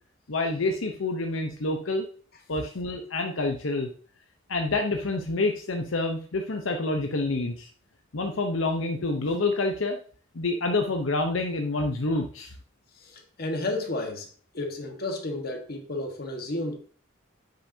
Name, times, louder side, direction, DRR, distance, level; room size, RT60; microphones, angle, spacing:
voice 1, 0.3-2.1 2.5-3.9 4.5-7.7 8.1-10.0 10.3-12.5, left 2 dB, 85° left, 0.9 m, -27 dB
voice 2, 13.0-16.8, left 2 dB, 50° left, 1.5 m, -32 dB
8.2 x 6.6 x 2.8 m
head